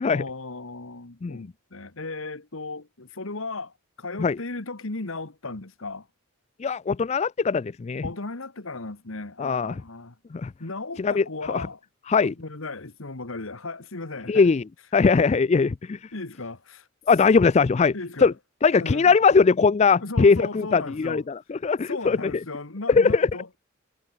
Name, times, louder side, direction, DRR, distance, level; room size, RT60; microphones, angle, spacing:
voice 1, 0.1-6.1 8.0-10.2 10.6-11.8 12.2-14.5 16.1-16.9 17.9-18.3 18.8-19.2 20.0-21.2 21.9-23.6, left 3 dB, 75° left, 1.8 m, -36 dB
voice 2, 6.6-8.0 9.4-9.7 10.3-10.5 11.0-11.7 12.1-12.3 14.3-14.6 14.9-16.0 17.1-17.9 18.2-18.3 18.6-22.3 22.9-23.3, left 5 dB, 30° left, 0.3 m, -20 dB
head